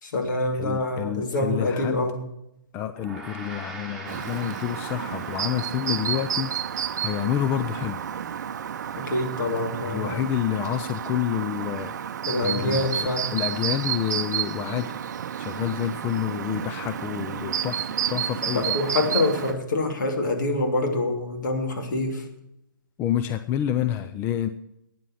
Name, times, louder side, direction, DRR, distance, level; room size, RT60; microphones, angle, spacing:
voice 1, 0.0-2.2 9.0-10.2 12.3-13.3 18.5-22.2, left 2 dB, 60° left, 3 dB, 2.8 m, -26 dB
voice 2, 0.5-2.1 2.7-6.5 7.0-8.0 9.8-14.9 15.4-18.8 23.0-24.5, left 10 dB, 20° left, 10 dB, 0.5 m, -28 dB
Gong, 2.9-12.5, right 2 dB, ahead, 3.3 m, -45 dB
Chirp tweet, 4.1-19.5, right 9 dB, 55° right, 0.7 m, -31 dB
12.5 x 9.3 x 6.5 m, 0.82 s
figure-of-eight pair, 130°, 11 cm